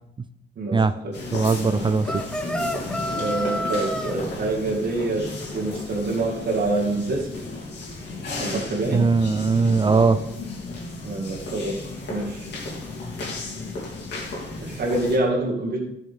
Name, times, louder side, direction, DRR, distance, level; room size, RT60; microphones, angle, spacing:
voice 1, 0.6-1.1 1.6-1.8 3.2-5.3 5.5-7.3 8.4-9.0 11.0-11.7 12.1-12.5 14.6-15.8, right 2 dB, 55° right, -2 dB, 2.3 m, -26 dB
sound 1, 1.1-15.2, left 2 dB, 60° left, 3.2 m, -34 dB
voice 2, 1.3-2.2 8.9-10.2, right 4 dB, 25° right, 12 dB, 0.5 m, -20 dB
sound 2, 2.0-4.1, equal, 5° left, 0.9 m, -29 dB
13.0 x 6.4 x 3.7 m, 0.85 s
cardioid pair, 90°, 20 cm